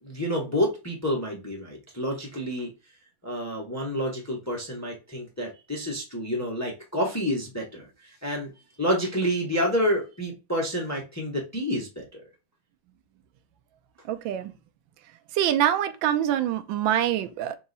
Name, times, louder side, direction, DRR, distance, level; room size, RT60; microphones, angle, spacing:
voice 1, 0.0-2.7 3.2-8.5 8.8-12.2, equal, 25° left, 0.4 m, -29 dB
voice 2, 14.1-14.5 15.3-17.6, right 11 dB, 75° right, 1.3 m, -25 dB
3.6 x 3.0 x 3.9 m
omnidirectional pair, 2.2 m